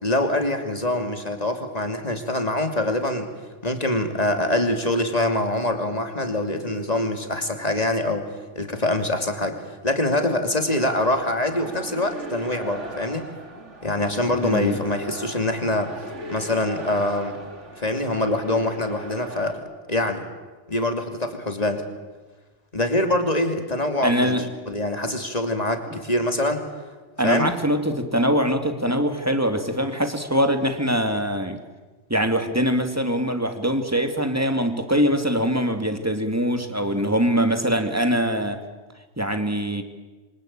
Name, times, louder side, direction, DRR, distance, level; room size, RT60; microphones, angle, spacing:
voice 1, 0.0-3.3 3.6-8.3 8.5-13.3 13.8-15.9 16.3-17.4 17.8-20.2 20.7-21.8 22.7-24.3 24.7-26.6 27.2-27.5, left 1 dB, 30° left, 6 dB, 3.1 m, -24 dB
sound 1, 10.7-19.5, equal, 75° right, 3.1 m, -38 dB
voice 2, 14.4-14.8 24.0-24.5 27.2-31.6 32.1-38.6 39.2-39.8, equal, 10° right, 7 dB, 2.3 m, -23 dB
27.5 x 24.5 x 8.9 m, 1.3 s
omnidirectional pair, 1.2 m